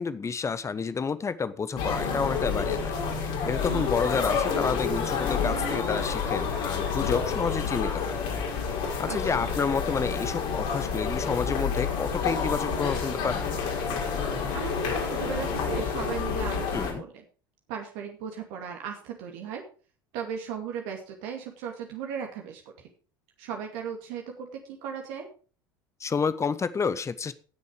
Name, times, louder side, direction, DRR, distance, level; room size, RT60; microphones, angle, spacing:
voice 1, 0.0-8.2 9.0-13.4 16.7-17.0 26.0-27.3, left 5 dB, 25° left, 14 dB, 1.2 m, -30 dB
sound 1, 1.8-16.9, left 5 dB, 65° left, 4.9 m, -29 dB
voice 2, 3.7-4.0 9.0-9.5 14.5-17.2 17.7-19.6 20.1-22.9 23.4-25.3, right 7 dB, 65° right, 2 dB, 2.3 m, -36 dB
17.5 x 6.9 x 5.0 m, 0.39 s
hypercardioid pair, 70°, 12 cm